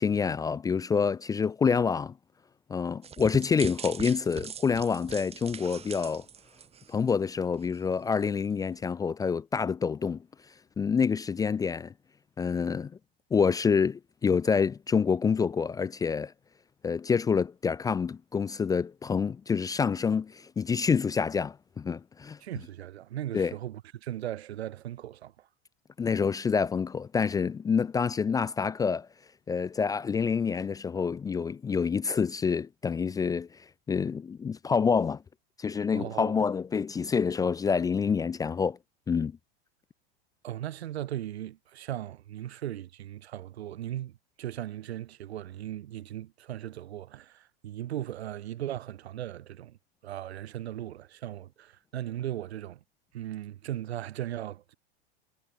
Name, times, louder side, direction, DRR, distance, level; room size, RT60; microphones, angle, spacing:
voice 1, 0.0-2.1 2.7-6.2 6.9-10.2 10.8-11.9 12.4-12.9 13.3-16.3 16.8-22.4 23.3-23.5 26.0-29.1 29.5-33.5 33.9-35.2 35.6-38.8 39.1-39.3, left 6 dB, 10° left, 0.6 m, -27 dB
sound 1, 3.0-7.3 7.6-7.8 8.2-8.3, right 8 dB, 20° right, 3.9 m, -42 dB
voice 2, 22.4-25.5 35.9-36.4 40.4-49.8 50.0-52.8 53.1-54.7, right 12 dB, 85° right, 7.5 m, -38 dB
supercardioid pair, 145°, 31 cm